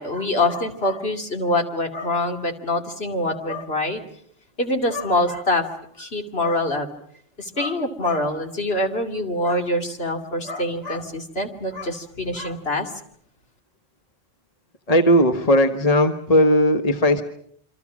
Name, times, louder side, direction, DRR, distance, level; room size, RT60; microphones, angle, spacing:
voice 1, 0.0-4.0 4.6-5.6 6.0-6.9 7.4-12.9, left 1 dB, 55° left, 4 dB, 2.9 m, -25 dB
voice 2, 14.9-17.2, equal, 35° left, 6 dB, 1.3 m, -17 dB
28.0 x 25.0 x 6.3 m, 0.65 s
omnidirectional pair, 1.2 m